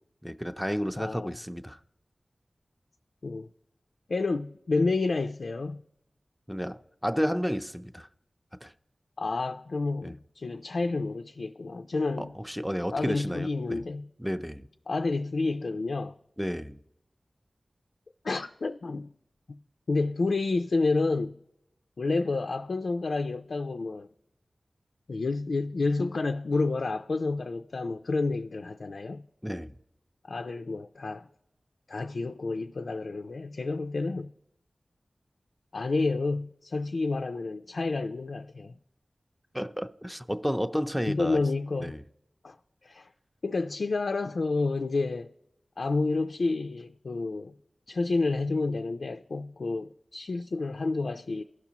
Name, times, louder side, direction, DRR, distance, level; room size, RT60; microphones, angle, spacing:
voice 1, 0.2-1.8 6.5-8.1 8.6-8.7 10.0-10.1 12.2-13.8 14.2-14.7 16.4-16.8 29.4-29.8 39.5-41.4 41.8-42.0, equal, ahead, 0.5 m, -32 dB
voice 2, 1.0-1.3 3.2-3.5 4.1-5.8 9.2-12.3 12.9-14.1 14.9-16.2 18.2-19.1 19.9-21.4 22.0-24.1 25.1-29.2 30.2-31.3 31.9-34.3 35.7-38.8 41.0-42.0 42.4-42.6 42.8-43.1 43.4-45.3 45.8-47.6 47.9-51.4, left 3 dB, 80° left, 0.3 m, -29 dB
16.0 x 5.9 x 2.9 m
wide cardioid pair, 60°, 0 cm